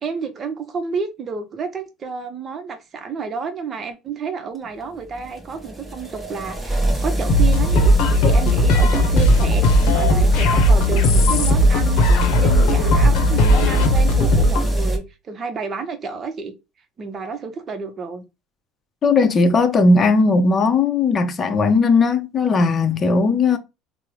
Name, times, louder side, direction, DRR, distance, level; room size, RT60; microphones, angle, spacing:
voice 1, 0.0-16.6 17.0-18.2, right 5 dB, 35° right, 0.6 m, -30 dB
sound 1, 4.6-15.0, equal, 10° right, 0.9 m, -24 dB
sound 2, 7.3-14.7, left 1 dB, 75° left, 0.7 m, -16 dB
voice 2, 19.0-23.6, left 3 dB, 35° left, 0.5 m, -17 dB
3.4 x 2.0 x 3.0 m
supercardioid pair, 90°, 0 cm